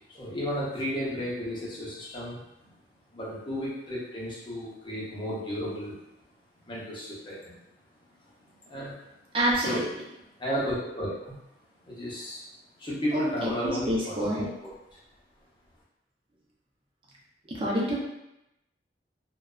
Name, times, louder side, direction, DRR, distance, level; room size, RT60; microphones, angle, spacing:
voice 1, 0.2-2.4 3.1-5.9 6.7-7.5 8.7-8.9 9.6-9.8 10.4-11.3 11.8-12.4 12.8-14.5, equal, 25° left, -7 dB, 0.7 m, -33 dB
voice 2, 9.3-9.8 13.1-14.5 17.5-18.0, equal, 30° right, -5 dB, 0.6 m, -27 dB
2.6 x 2.2 x 2.3 m, 0.89 s
head